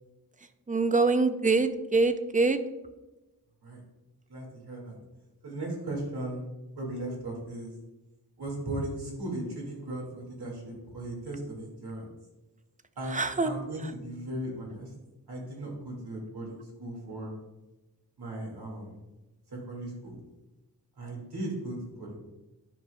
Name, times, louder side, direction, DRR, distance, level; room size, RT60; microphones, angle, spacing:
voice 1, 0.7-2.6 13.1-13.5, right 3 dB, 20° right, 10 dB, 0.4 m, -24 dB
voice 2, 4.3-5.0 5.4-6.4 6.8-7.7 8.4-12.0 13.0-14.9 15.3-17.3 18.2-19.0 19.5-20.2 21.0-22.2, right 1 dB, 75° right, -2 dB, 2.2 m, -37 dB
9.9 x 5.2 x 2.3 m, 1.0 s
wide cardioid pair, 75°, 38 cm